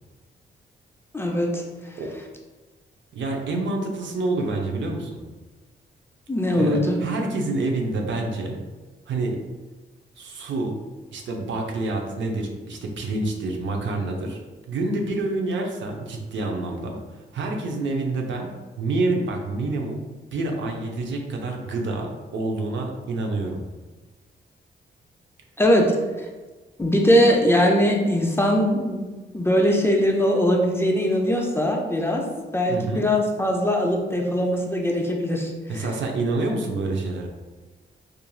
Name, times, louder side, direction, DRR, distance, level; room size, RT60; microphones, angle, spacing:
voice 1, 1.1-1.6 6.3-7.0 25.6-25.9 26.8-29.0 29.3-32.2 32.5-35.5 35.8-35.9, equal, 10° left, 0 dB, 0.4 m, -21 dB
voice 2, 3.1-5.2 6.6-8.6 9.1-9.4 10.2-10.8 11.1-14.4 14.7-20.1 20.3-23.6 32.7-33.1 35.7-37.3, right 2 dB, 70° right, 2 dB, 0.5 m, -27 dB
2.9 x 2.4 x 2.3 m, 1.3 s
cardioid pair, 75°, 20 cm